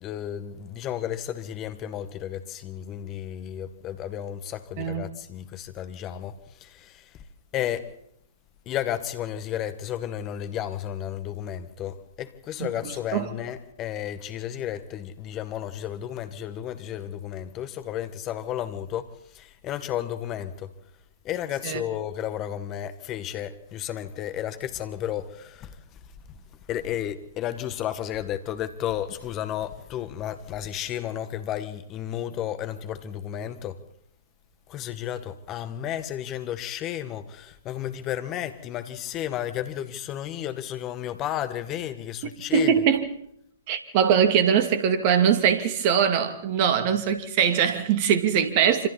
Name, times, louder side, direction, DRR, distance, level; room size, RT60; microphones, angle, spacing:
voice 1, 0.0-7.2 7.5-8.0 8.6-20.7 21.2-26.0 26.3-26.4 26.7-33.8 34.7-42.7, left 11 dB, 25° left, 1.7 m, -33 dB
voice 2, 4.8-5.1 12.6-12.7 13.1-13.3 21.6-21.8 42.5-43.0 43.7-48.9, right 8 dB, 35° right, 2.5 m, -22 dB
27.0 x 26.5 x 4.2 m
figure-of-eight pair, 120°, 0 cm